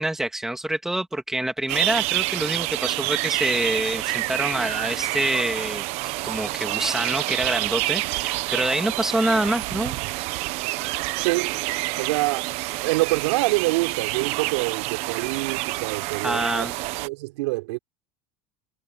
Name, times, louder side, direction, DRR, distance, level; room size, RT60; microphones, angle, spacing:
voice 1, 0.0-5.8 6.2-10.0 16.2-16.7, right 1 dB, 5° right, 2.0 m, -26 dB
sound 1, 1.7-17.1, right 20 dB, 50° right, 1.0 m, -28 dB
voice 2, 11.2-11.6 12.0-12.5 12.8-16.7 17.0-17.8, right 22 dB, 75° right, 5.5 m, -26 dB
supercardioid pair, 165°, 14 cm